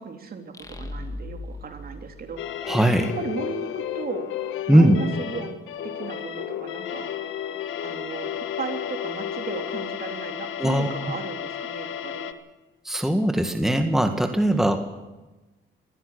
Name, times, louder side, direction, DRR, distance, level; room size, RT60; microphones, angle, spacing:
voice 1, 0.0-2.7 3.2-4.3 4.7-5.6 5.8-7.1 7.8-12.3, right 5 dB, 50° right, 5 dB, 3.3 m, -35 dB
sound 1, 0.5-3.2, left 2 dB, 15° left, 2.3 m, -38 dB
sound 2, 2.4-12.3, left 10 dB, 90° left, 1.4 m, -32 dB
voice 2, 2.6-3.1 4.7-5.0 10.6-10.9 12.9-14.8, right 1 dB, ahead, 6 dB, 1.9 m, -20 dB
20.5 x 15.5 x 8.2 m, 1.1 s
cardioid pair, 90°, 20 cm